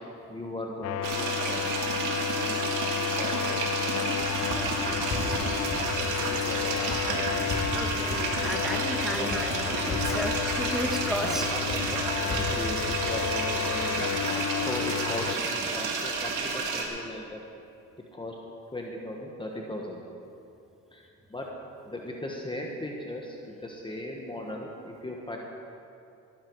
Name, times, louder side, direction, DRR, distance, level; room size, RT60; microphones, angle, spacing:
voice 1, 0.3-1.6 2.9-4.6 5.2-5.4 6.0-7.2 9.1-9.3 11.2-17.4 18.1-18.4 18.7-20.0 20.9-21.5 21.8-25.4, left 1 dB, 15° left, -1 dB, 1.4 m, -38 dB
sound 1, 0.8-15.4, left 11 dB, 55° left, 0.4 m, -32 dB
sound 2, 1.0-16.9, right 4 dB, 90° right, 1.8 m, -31 dB
sound 3, 4.5-4.7 4.9-5.4 5.7-6.2 6.6-7.1 7.3-7.8 8.1-8.6 9.0-9.5 9.7-10.2 10.5-11.0 11.4-11.9 12.1-12.6 12.9-13.4 13.8-13.9, left 2 dB, 40° left, 2.8 m, -36 dB
voice 2, 7.7-11.5, equal, ahead, 2 dB, 1.6 m, -33 dB
17.0 x 10.5 x 4.7 m, 2.7 s
cardioid pair, 90°, 30 cm